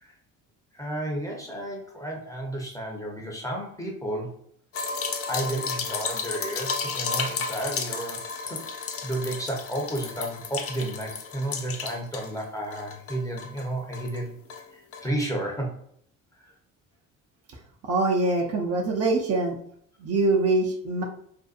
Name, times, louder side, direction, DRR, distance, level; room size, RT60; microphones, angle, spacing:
voice 1, 0.7-4.4 5.3-8.2 8.5-8.6 9.0-14.4 14.7-15.7 16.4-16.5, right 1 dB, 10° left, 0 dB, 0.8 m, -32 dB
sound 1, 4.7-12.4 12.7-14.2 14.5-14.6 14.9-15.0, left 5 dB, 40° left, 0.5 m, -33 dB
voice 2, 17.8-19.6 20.0-21.0, right 2 dB, 40° right, 0 dB, 0.6 m, -24 dB
2.7 x 2.1 x 2.4 m, 0.65 s
supercardioid pair, 70°, 37 cm